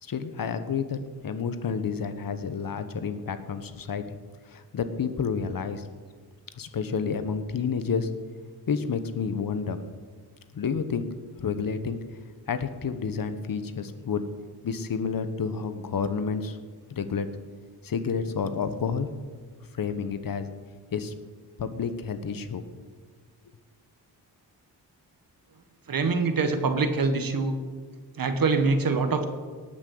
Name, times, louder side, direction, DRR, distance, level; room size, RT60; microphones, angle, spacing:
voice 1, 0.0-4.2 4.5-5.9 6.6-8.1 8.7-9.8 10.5-11.1 11.4-12.0 12.5-14.2 14.6-16.6 16.9-17.3 17.8-19.1 19.7-20.5 20.9-21.1 21.6-22.6, left 6 dB, 55° left, 10 dB, 1.1 m, -30 dB
voice 2, 25.9-27.5 28.2-29.2, right 4 dB, 60° right, 7 dB, 1.7 m, -24 dB
18.5 x 6.3 x 7.7 m, 1.5 s
cardioid pair, 90°, 40 cm